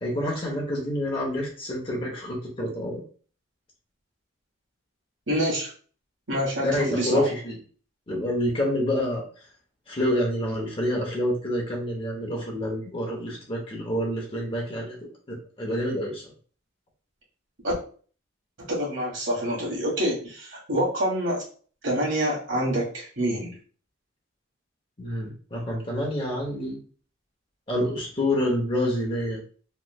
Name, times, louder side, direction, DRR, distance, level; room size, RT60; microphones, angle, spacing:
voice 1, 0.0-3.0 6.6-7.6 8.1-9.2 9.9-15.0 15.3-16.2 25.0-26.8 27.7-29.4, left 1 dB, 25° left, -2 dB, 0.8 m, -27 dB
voice 2, 5.3-5.7 6.3-7.3 17.6-17.7 18.6-21.4 21.8-23.6, equal, 65° right, -3 dB, 1.3 m, -26 dB
3.1 x 3.0 x 2.3 m, 0.42 s
head